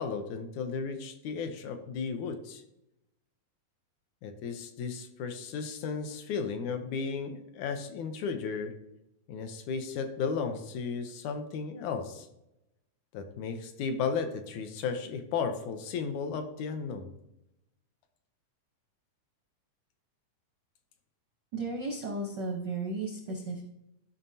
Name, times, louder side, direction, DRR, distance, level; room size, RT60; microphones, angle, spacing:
voice 1, 0.0-2.6 4.2-8.8 9.3-12.3 13.1-17.1, left 5 dB, 75° left, 7 dB, 2.0 m, -34 dB
voice 2, 21.5-23.6, right 2 dB, 75° right, 0 dB, 1.0 m, -34 dB
13.0 x 5.7 x 2.7 m, 0.86 s
omnidirectional pair, 3.5 m